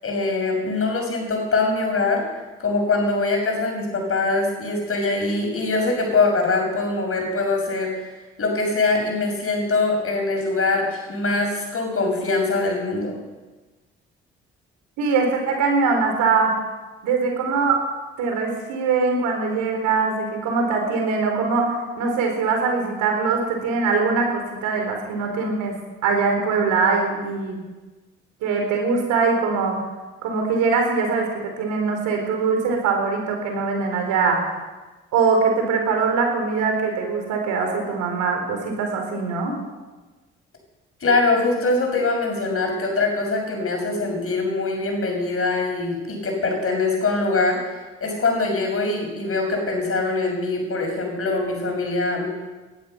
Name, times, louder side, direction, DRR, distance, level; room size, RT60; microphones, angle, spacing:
voice 1, 0.0-2.2 2.6-8.0 8.4-13.2 41.0-47.7 48.0-52.3, left 3 dB, 50° left, 1 dB, 6.5 m, -23 dB
voice 2, 15.0-16.5 17.0-17.8 18.2-25.8 26.0-27.6 28.4-29.8 30.2-34.5 35.1-39.5, right 4 dB, 75° right, 2 dB, 4.3 m, -22 dB
19.0 x 12.0 x 5.9 m, 1.2 s
hypercardioid pair, 50°, 30 cm